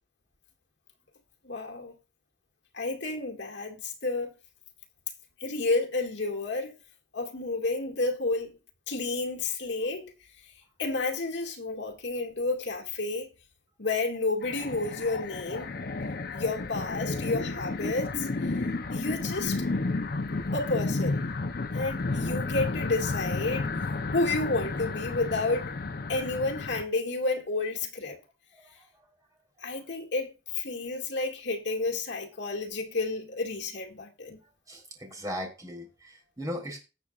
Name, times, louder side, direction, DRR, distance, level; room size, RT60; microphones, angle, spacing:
voice 1, 1.4-1.9 2.7-4.3 5.4-6.7 7.1-8.5 8.9-10.1 10.8-13.3 13.8-15.7 16.3-18.3 18.9-19.6 20.5-21.2 21.7-23.7 24.1-25.7 26.1-28.2 29.6-34.4, left 3 dB, 70° left, 2.2 m, -30 dB
sound 1, 14.4-26.8, left 3 dB, 55° left, 0.7 m, -32 dB
voice 2, 34.7-36.8, equal, 20° right, 4.0 m, -38 dB
18.5 x 7.1 x 2.5 m
head